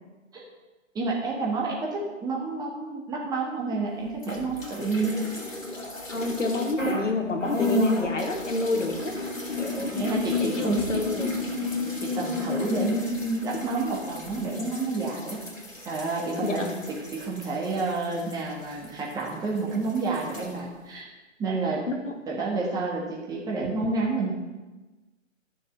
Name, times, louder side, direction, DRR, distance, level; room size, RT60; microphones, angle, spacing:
voice 1, 0.9-5.2 9.9-11.0 12.0-15.4 15.8-21.1 21.4-21.8 22.3-24.3, right 3 dB, 10° right, -2 dB, 1.5 m, -29 dB
sound 1, 4.2-7.1 7.4-19.3 19.6-20.5, left 2 dB, 85° left, 2.6 m, -32 dB
voice 2, 6.1-9.1 9.6-9.9 10.4-11.3 16.4-16.8 21.9-22.1, left 3 dB, 70° left, 3 dB, 2.3 m, -29 dB
12.5 x 6.7 x 7.8 m, 1.2 s
figure-of-eight pair, 130°, 38 cm